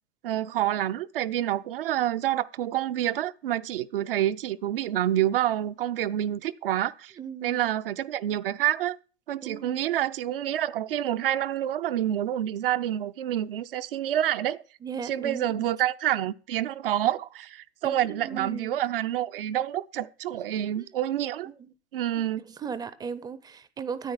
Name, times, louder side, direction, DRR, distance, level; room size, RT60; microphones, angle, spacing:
voice 1, 0.2-7.1 7.4-9.0 9.3-14.6 15.0-21.5 21.9-22.4, right 12 dB, 60° right, 0.7 m, -28 dB
voice 2, 7.2-7.6 9.4-9.8 14.8-15.7 17.8-18.8 20.8-20.9 21.5-21.6 22.2-24.1, right 6 dB, 10° right, 0.6 m, -37 dB
10.0 x 8.6 x 7.1 m
hypercardioid pair, 110°, 31 cm